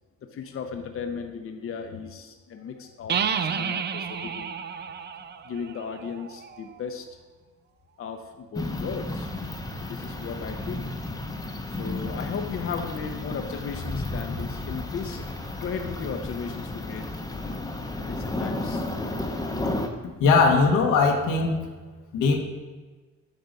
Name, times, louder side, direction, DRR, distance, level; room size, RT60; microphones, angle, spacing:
voice 1, 0.2-4.5 5.4-7.1 8.0-9.3 9.8-10.9 11.7-15.2 15.6-17.2 18.0-18.9, left 6 dB, 45° left, 5 dB, 0.6 m, -36 dB
sound 1, 3.1-6.7, right 7 dB, 35° right, 0.4 m, -31 dB
sound 2, 8.5-19.9, left 2 dB, 10° left, 0.7 m, -33 dB
voice 2, 20.2-21.6 22.1-22.4, left 4 dB, 90° left, 2 dB, 1.2 m, -19 dB
8.3 x 3.9 x 5.2 m, 1.3 s
cardioid pair, 90°, 30 cm